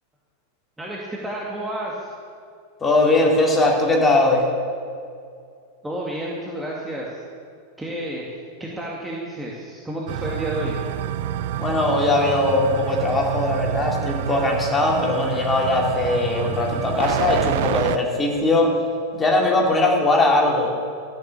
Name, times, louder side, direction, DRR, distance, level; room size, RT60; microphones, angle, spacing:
voice 1, 0.8-2.1 5.8-7.1 7.8-8.3 8.6-10.7, right 1 dB, 5° right, -4 dB, 2.0 m, -30 dB
voice 2, 2.8-4.5 11.6-18.8 19.1-20.7, left 2 dB, 15° left, -1 dB, 2.9 m, -20 dB
sound 1, 10.1-18.0, right 11 dB, 50° right, 0.4 m, -28 dB
13.5 x 9.2 x 7.3 m, 2.3 s
figure-of-eight pair, 90°, 0 cm